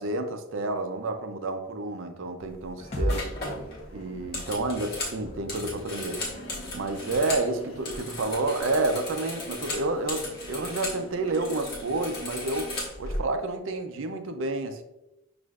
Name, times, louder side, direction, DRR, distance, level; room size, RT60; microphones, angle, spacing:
voice 1, 0.0-3.2 3.9-6.2 6.7-12.7 13.0-14.8, right 2 dB, 60° right, 6 dB, 0.5 m, -30 dB
sound 1, 2.5-2.7 3.1-7.5 7.8-11.0 11.3-13.2, left 2 dB, 45° left, 1.3 m, -36 dB
sound 2, 2.8-7.4, equal, 30° left, 0.7 m, -36 dB
sound 3, 6.1-12.9, left 1 dB, 70° left, 0.8 m, -46 dB
6.3 x 2.5 x 2.3 m, 0.92 s
head